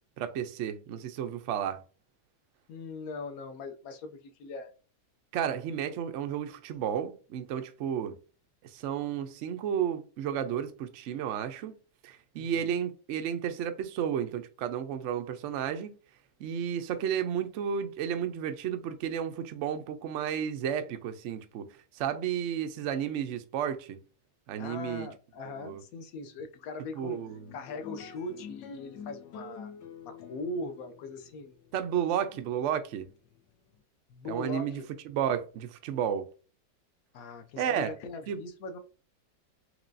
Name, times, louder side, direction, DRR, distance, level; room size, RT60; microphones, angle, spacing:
voice 1, 0.2-1.8 5.3-8.1 8.6-11.8 12.0-15.9 16.4-21.7 21.9-24.0 24.5-25.1 25.4-25.8 27.0-27.5 31.7-33.1 34.3-36.3 37.6-37.9 38.3-38.4, right 9 dB, 90° right, 0.6 m, -32 dB
voice 2, 2.7-4.7 12.4-12.7 24.6-27.2 27.5-29.7 30.0-31.5 34.1-34.8 37.1-38.8, left 2 dB, 70° left, 0.9 m, -40 dB
sound 1, 27.1-33.8, left 6 dB, 90° left, 1.5 m, -48 dB
4.6 x 3.0 x 2.6 m
omnidirectional pair, 1.9 m